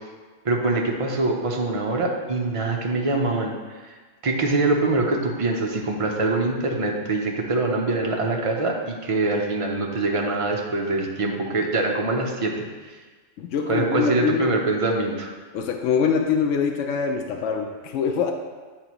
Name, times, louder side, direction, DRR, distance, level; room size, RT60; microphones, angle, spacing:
voice 1, 0.4-3.5 3.8-3.9 4.2-13.0 13.7-15.3, right 2 dB, 30° right, 0 dB, 0.7 m, -24 dB
voice 2, 13.4-14.5 15.5-18.3, left 6 dB, 85° left, 4 dB, 0.9 m, -24 dB
10.5 x 4.0 x 3.0 m, 1.4 s
omnidirectional pair, 1.2 m